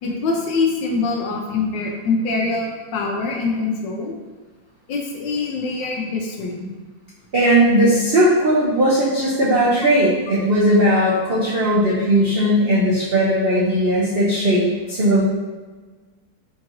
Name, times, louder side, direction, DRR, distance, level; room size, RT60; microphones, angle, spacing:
voice 1, 0.0-4.1 4.9-6.7, left 4 dB, 75° left, 0 dB, 1.3 m, -24 dB
voice 2, 7.3-15.2, right 1 dB, 85° right, -8 dB, 0.5 m, -17 dB
4.6 x 2.9 x 2.6 m, 1.3 s
omnidirectional pair, 2.1 m